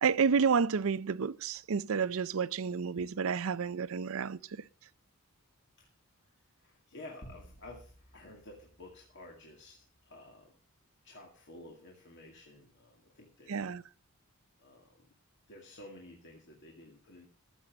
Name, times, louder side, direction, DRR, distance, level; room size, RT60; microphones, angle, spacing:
voice 1, 0.0-4.4 13.5-13.8, right 6 dB, 65° right, 0.5 m, -30 dB
voice 2, 6.6-10.6 11.0-13.7 14.6-15.1 15.5-17.3, left 2 dB, 55° left, 2.3 m, -52 dB
sound 1, 7.2-10.0, right 1 dB, 35° left, 2.3 m, -56 dB
14.5 x 7.4 x 6.5 m
head